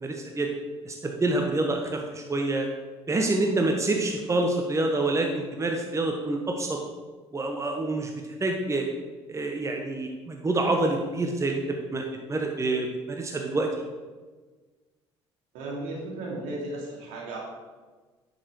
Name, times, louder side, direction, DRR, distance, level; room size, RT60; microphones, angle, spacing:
voice 1, 0.0-0.5 0.8-2.7 3.1-6.8 7.3-8.1 8.4-8.8 9.3-11.6 11.9-13.7, right 2 dB, 20° right, 2 dB, 1.3 m, -27 dB
voice 2, 15.5-17.4, right 2 dB, 65° right, -3 dB, 2.8 m, -35 dB
10.0 x 6.8 x 4.8 m, 1.4 s
figure-of-eight pair, 55°, 15 cm